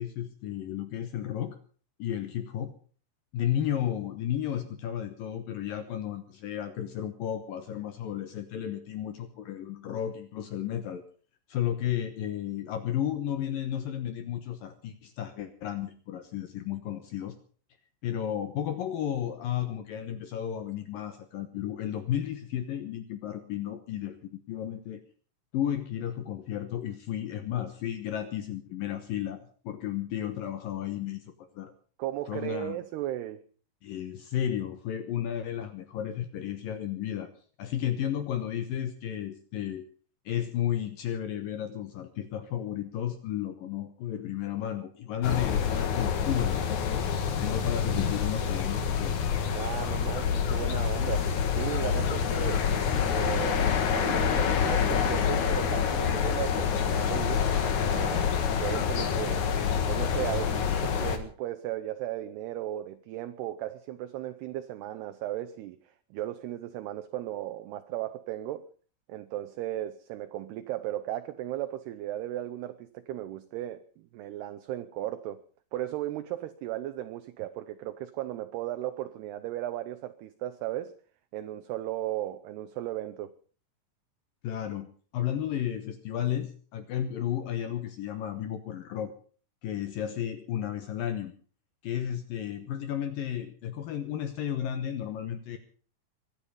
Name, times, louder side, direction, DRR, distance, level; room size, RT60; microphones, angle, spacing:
voice 1, 0.0-1.6 2.0-2.7 3.3-11.0 11.5-17.4 18.0-25.0 25.5-31.7 32.3-32.8 33.8-37.3 37.6-39.9 40.3-47.0 47.4-49.1 84.4-89.1 89.6-91.3 91.8-95.6, left 10 dB, 75° left, 9 dB, 2.1 m, -33 dB
voice 2, 32.0-33.4 49.5-52.7 53.1-57.5 57.8-59.6 59.9-65.8 66.1-68.7 69.1-75.4 75.7-81.0 81.3-83.3, right 13 dB, 80° right, 8 dB, 2.4 m, -36 dB
sound 1, 45.2-61.2, left 7 dB, 60° left, 2.2 m, -27 dB
23.5 x 10.0 x 5.5 m, 0.42 s
omnidirectional pair, 5.5 m